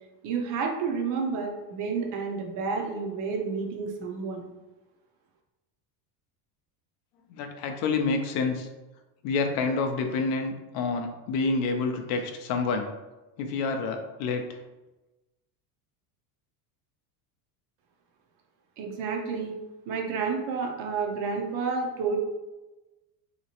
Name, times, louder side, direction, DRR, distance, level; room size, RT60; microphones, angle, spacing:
voice 1, 0.2-4.5 18.8-19.6 19.9-22.2, right 5 dB, 45° right, 1 dB, 0.5 m, -30 dB
voice 2, 7.3-8.7 9.2-12.9 13.4-14.5, left 4 dB, 55° left, 5 dB, 0.5 m, -28 dB
3.0 x 2.9 x 2.8 m, 1.1 s
cardioid pair, 155°, 47 cm